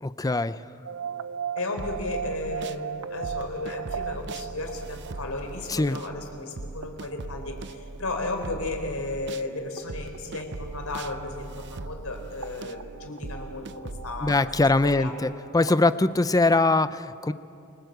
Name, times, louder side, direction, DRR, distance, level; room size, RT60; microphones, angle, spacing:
voice 1, 0.0-0.6 5.7-6.0 14.2-17.3, left 2 dB, 15° left, 14 dB, 0.5 m, -22 dB
sound 1, 0.8-16.0, right 7 dB, 85° right, 0.8 m, -40 dB
voice 2, 1.6-14.4 14.8-15.1, left 2 dB, 75° left, 4 dB, 3.9 m, -34 dB
sound 2, 1.8-2.8 3.2-9.5 9.9-15.1, right 3 dB, 55° right, 0.7 m, -40 dB
29.0 x 20.0 x 7.9 m, 2.7 s
head